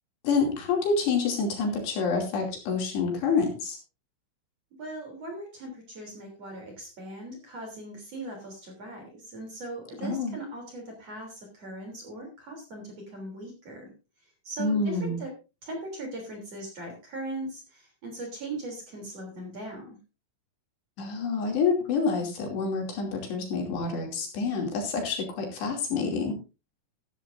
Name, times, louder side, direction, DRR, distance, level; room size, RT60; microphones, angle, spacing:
voice 1, 0.2-3.8 10.0-10.3 14.6-15.2 21.0-26.3, left 4 dB, 65° left, 2 dB, 4.7 m, -27 dB
voice 2, 4.8-13.9 14.2-15.3 15.6-20.0, right 2 dB, 35° right, 2 dB, 3.9 m, -39 dB
14.0 x 14.0 x 2.7 m, 0.29 s
omnidirectional pair, 5.6 m